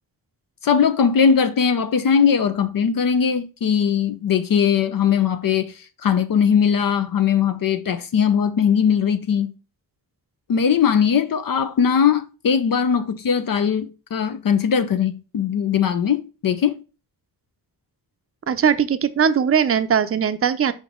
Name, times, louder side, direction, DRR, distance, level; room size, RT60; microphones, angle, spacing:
voice 1, 0.6-9.5 10.5-16.8, left 7 dB, 55° left, 0.6 m, -20 dB
voice 2, 18.5-20.7, right 7 dB, 35° right, 0.6 m, -19 dB
5.2 x 5.1 x 3.6 m
cardioid pair, 85°, 40 cm